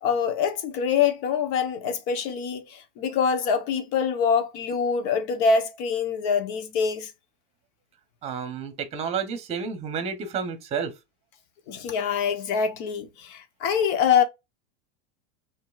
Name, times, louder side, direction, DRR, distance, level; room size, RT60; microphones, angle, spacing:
voice 1, 0.0-7.1 11.7-14.2, left 6 dB, 50° left, 1.1 m, -25 dB
voice 2, 8.2-10.9, right 6 dB, 20° right, 1.0 m, -30 dB
5.2 x 2.9 x 2.4 m
supercardioid pair, 160°, 32 cm